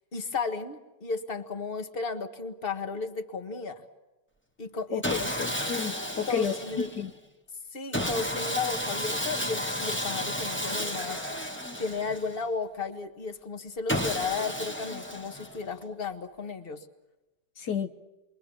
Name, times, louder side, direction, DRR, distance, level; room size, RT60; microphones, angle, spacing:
voice 1, 0.1-3.8 4.6-5.3 6.3-6.9 7.7-11.2 11.8-16.8, left 4 dB, 35° left, 1.8 m, -34 dB
voice 2, 4.9-6.6 6.9-7.1 17.6-17.9, left 7 dB, 70° left, 1.6 m, -31 dB
Sawing, 5.0-7.1 7.9-12.5 13.9-15.7, equal, 10° left, 1.2 m, -32 dB
30.0 x 23.0 x 7.2 m
omnidirectional pair, 1.9 m